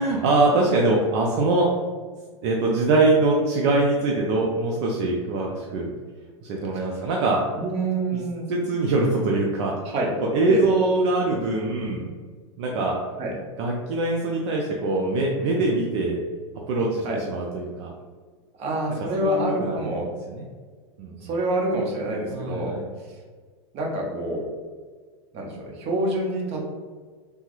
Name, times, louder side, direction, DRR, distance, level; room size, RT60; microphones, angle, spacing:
voice 1, 0.0-1.7 2.4-5.9 6.4-7.4 8.5-9.7 10.2-12.2 12.6-13.0 13.6-16.2 16.7-17.9 19.2-19.8 20.3-20.4 21.0-21.1 22.3-22.8, right 2 dB, 65° right, -1 dB, 0.5 m, -23 dB
voice 2, 7.5-8.4 9.8-10.1 10.5-10.7 13.2-13.3 17.0-17.2 18.6-20.1 21.0-22.8 23.1-23.2 23.7-24.5 25.3-26.6, right 1 dB, 40° right, -1 dB, 0.9 m, -27 dB
3.2 x 2.0 x 3.0 m, 1.5 s
hypercardioid pair, 115°, 16 cm